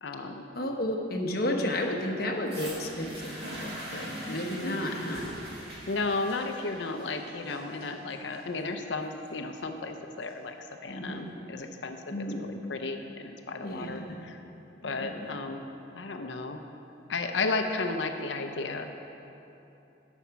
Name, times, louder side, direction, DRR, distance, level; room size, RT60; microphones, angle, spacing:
voice 1, 0.0-0.4 4.6-4.8 5.9-10.5 10.8-11.2 11.5-14.4 14.8-15.6 15.9-16.6 17.1-18.9, left 3 dB, 75° left, 5 dB, 0.7 m, -33 dB
voice 2, 0.5-5.2 10.9-11.3 12.1-12.4 13.6-14.2 14.8-15.3, left 1 dB, 50° left, 1 dB, 1.1 m, -32 dB
sound 1, 2.5-10.5 11.3-11.4, right 1 dB, 60° right, 2.1 m, -43 dB
11.5 x 7.2 x 5.8 m, 2.9 s
head